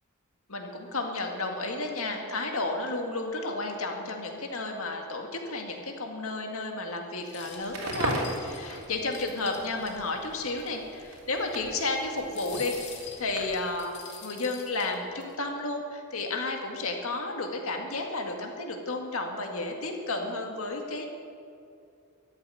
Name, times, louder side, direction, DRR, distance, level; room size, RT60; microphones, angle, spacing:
voice 1, 0.5-12.8 13.2-14.0 14.2-21.1, left 2 dB, 70° left, 3 dB, 2.0 m, -32 dB
sound 1, 7.2-9.9 10.3-10.4 10.6-10.8 12.2-15.3, left 6 dB, 55° left, 2.2 m, -45 dB
Crackle, 7.6-13.8, right 1 dB, 70° right, 3.4 m, -38 dB
14.0 x 8.0 x 10.0 m, 2.5 s
head